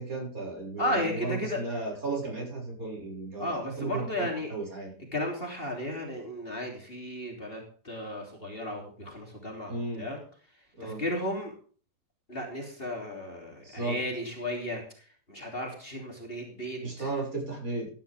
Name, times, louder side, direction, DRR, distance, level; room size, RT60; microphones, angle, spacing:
voice 1, 0.0-3.5 3.8-4.9 9.7-10.0 10.8-11.0 13.6-14.0 16.8-17.9, right 3 dB, 55° right, -1 dB, 7.0 m, -34 dB
voice 2, 0.8-1.6 3.4-4.5 5.1-10.2 10.5-11.5 12.3-17.1, left 1 dB, 35° left, 1 dB, 3.5 m, -34 dB
16.0 x 11.5 x 3.6 m, 0.43 s
omnidirectional pair, 1.7 m